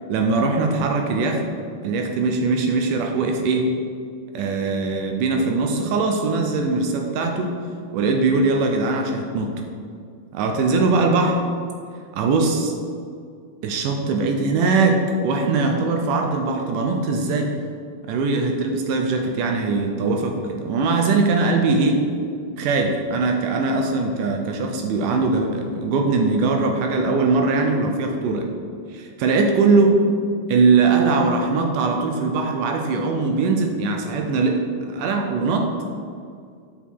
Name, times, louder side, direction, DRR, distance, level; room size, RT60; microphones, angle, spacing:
voice 1, 0.1-1.4 1.8-3.7 4.3-7.5 7.9-9.5 10.3-11.4 12.1-12.7 13.6-17.5 18.0-22.0 22.6-28.5 28.9-30.0 30.5-34.6 34.9-35.7, right 3 dB, 80° right, 3 dB, 2.0 m, -21 dB
8.4 x 5.6 x 4.5 m, 2.2 s
omnidirectional pair, 4.1 m